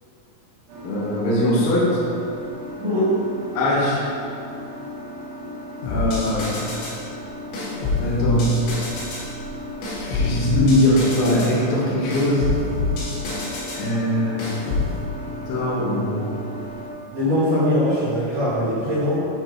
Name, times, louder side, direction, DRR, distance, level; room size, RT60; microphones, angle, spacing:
sound 1, 0.7-16.9, left 1 dB, 75° right, 1.7 m, -36 dB
voice 1, 0.8-1.9 3.5-4.0 5.9-6.6 8.0-8.5 10.0-12.4 13.8-14.5 15.2-16.3, left 1 dB, 65° left, -6 dB, 2.7 m, -21 dB
voice 2, 2.8-3.1 17.1-19.3, left 1 dB, 50° right, -11 dB, 3.0 m, -21 dB
sound 2, 5.8-7.0 7.5-9.3 9.8-11.6 12.1-13.9 14.4-14.9, left 3 dB, 85° left, 4.1 m, -26 dB
9.3 x 4.5 x 4.6 m, 2.5 s
omnidirectional pair, 5.5 m